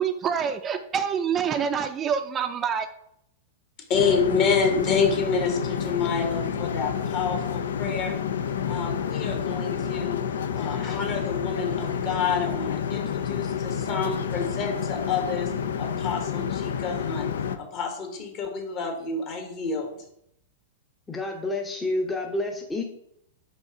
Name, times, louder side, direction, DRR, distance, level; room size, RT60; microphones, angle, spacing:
voice 1, 0.0-2.9, right 7 dB, 25° right, 8 dB, 0.5 m, -26 dB
sound 1, 3.9-17.6, left 8 dB, 80° left, 0.5 m, -29 dB
voice 2, 3.9-8.2 8.7-10.2 10.5-15.5 15.8-17.3 17.6-20.0, left 5 dB, 45° left, 4 dB, 1.5 m, -28 dB
voice 3, 21.1-22.8, left 2 dB, 15° left, 2 dB, 0.7 m, -29 dB
5.1 x 4.1 x 4.9 m, 0.75 s
hypercardioid pair, 115°, 0 cm